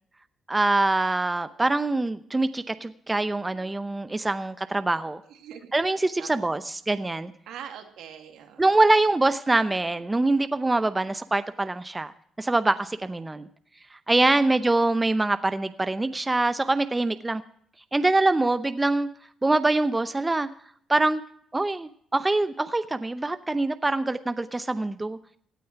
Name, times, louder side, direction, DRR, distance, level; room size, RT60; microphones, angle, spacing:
voice 1, 0.5-5.2 5.7-7.3 8.6-12.1 12.4-13.5 13.9-17.4 17.9-19.1 19.4-20.5 20.9-21.2 21.5-25.2, right 2 dB, 15° right, 0.7 m, -24 dB
voice 2, 5.3-5.7 6.2-6.6 7.5-8.7 14.2-14.5, right 9 dB, 85° right, 2.4 m, -43 dB
17.0 x 9.3 x 5.8 m
cardioid pair, 90°, 0 cm